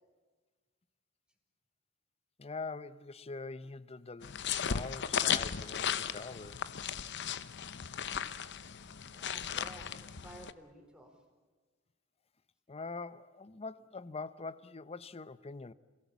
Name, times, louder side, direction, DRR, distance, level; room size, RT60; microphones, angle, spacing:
voice 1, 2.4-6.7 12.7-15.7, left 3 dB, 30° left, 0.7 m, -44 dB
sound 1, 4.2-10.5, left 8 dB, 60° left, 0.9 m, -36 dB
voice 2, 9.1-11.2, right 1 dB, 5° right, 4.4 m, -53 dB
28.0 x 17.5 x 8.3 m
head